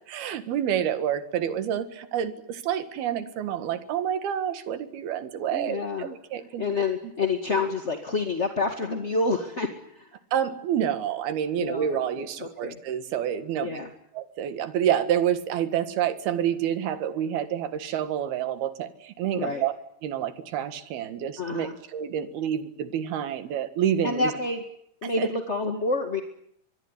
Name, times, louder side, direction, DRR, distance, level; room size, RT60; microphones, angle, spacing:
voice 1, 0.1-6.6 10.3-13.8 14.1-19.7 20.0-24.3 25.0-25.3, right 9 dB, 90° right, 11 dB, 3.7 m, -28 dB
voice 2, 5.5-6.1 6.6-10.1 11.6-12.8 13.6-13.9 19.3-19.6 21.4-21.7 24.0-24.6 25.0-26.2, left 3 dB, 25° left, 5 dB, 1.5 m, -28 dB
24.5 x 22.0 x 10.0 m, 0.70 s
omnidirectional pair, 4.3 m